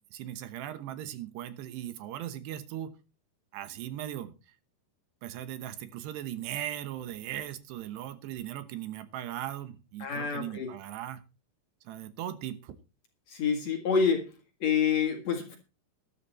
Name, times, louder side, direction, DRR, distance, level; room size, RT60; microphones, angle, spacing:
voice 1, 0.1-3.0 3.5-4.3 5.2-11.2 11.8-12.8, right 12 dB, 80° right, 12 dB, 3.3 m, -38 dB
voice 2, 10.0-10.7 13.3-14.3 14.6-15.6, left 6 dB, 50° left, 3 dB, 2.6 m, -27 dB
12.5 x 12.0 x 4.3 m, 0.31 s
omnidirectional pair, 4.9 m